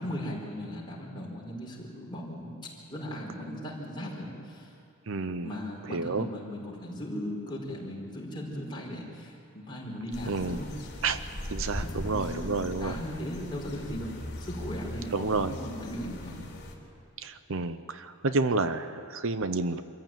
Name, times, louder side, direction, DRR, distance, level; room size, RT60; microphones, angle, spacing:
voice 1, 0.0-2.6 2.9-4.7 5.4-10.7 11.8-14.1 14.4-16.5, equal, 20° left, -3 dB, 4.9 m, -37 dB
voice 2, 5.1-5.5 5.9-6.3 10.3-10.6 11.0-11.2 11.5-13.0 15.1-15.5 17.2-19.8, right 3 dB, 60° right, 11 dB, 0.7 m, -30 dB
sound 1, 10.1-16.7, equal, 50° left, 3.8 m, -40 dB
26.0 x 15.0 x 9.0 m, 2.6 s
head